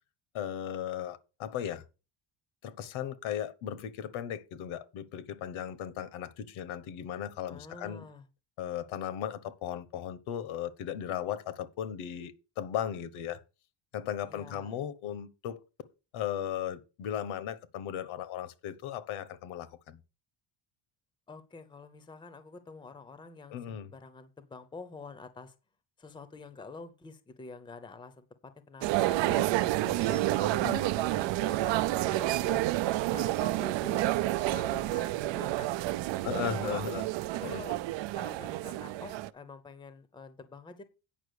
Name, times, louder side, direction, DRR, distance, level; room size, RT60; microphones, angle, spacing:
voice 1, 0.3-1.8 2.6-8.0 8.6-13.4 13.9-15.6 16.1-20.0 23.5-23.9 29.3-29.4 29.8-30.0 30.6-30.9 36.2-37.0 37.4-37.6, left 10 dB, 75° left, 1.3 m, -36 dB
voice 2, 7.5-8.2 14.3-14.7 21.3-25.5 26.0-29.7 30.1-30.9 31.2-32.7 33.1-35.7 36.3-37.0 37.3-37.8 38.1-40.8, left 3 dB, 10° left, 0.7 m, -47 dB
sound 1, 28.8-39.3, right 16 dB, 65° right, 0.6 m, -29 dB
9.2 x 5.8 x 6.5 m
cardioid pair, 180°, 48 cm